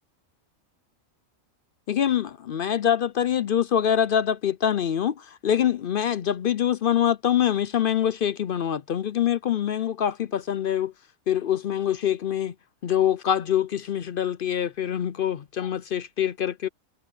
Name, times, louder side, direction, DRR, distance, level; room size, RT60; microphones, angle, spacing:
voice 1, 1.9-10.9 11.3-12.5 12.8-16.7, left 9 dB, 60° left, 0.6 m, -24 dB
omnidirectional pair, 1.4 m